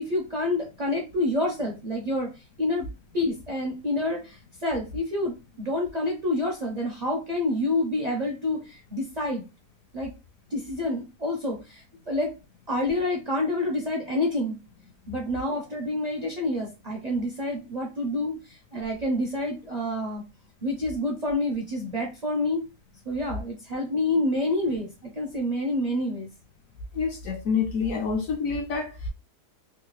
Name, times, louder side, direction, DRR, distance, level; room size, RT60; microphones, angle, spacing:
voice 1, 0.0-2.3 2.6-2.9 3.1-9.4 9.9-10.1 10.5-12.3 12.7-14.6 15.1-18.3 18.7-20.2 20.6-22.6 23.1-26.3, left 1 dB, 50° right, 0.5 m, -28 dB
voice 2, 26.9-29.1, left 5 dB, 65° left, 0.9 m, -27 dB
3.4 x 2.0 x 3.1 m
omnidirectional pair, 1.7 m